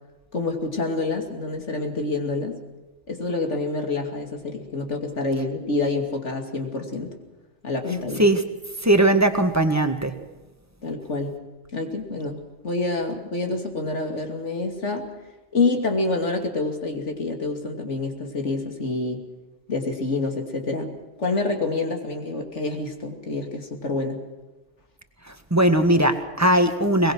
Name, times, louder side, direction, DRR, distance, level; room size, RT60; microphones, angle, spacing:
voice 1, 0.3-2.6 3.1-7.2 7.6-8.2 10.8-11.4 11.7-15.1 15.5-19.2 19.7-24.2, left 3 dB, 70° left, 3 dB, 3.0 m, -27 dB
voice 2, 8.8-10.1 25.5-27.1, right 1 dB, 15° right, 7 dB, 1.6 m, -19 dB
22.5 x 21.0 x 6.3 m, 1.1 s
omnidirectional pair, 1.3 m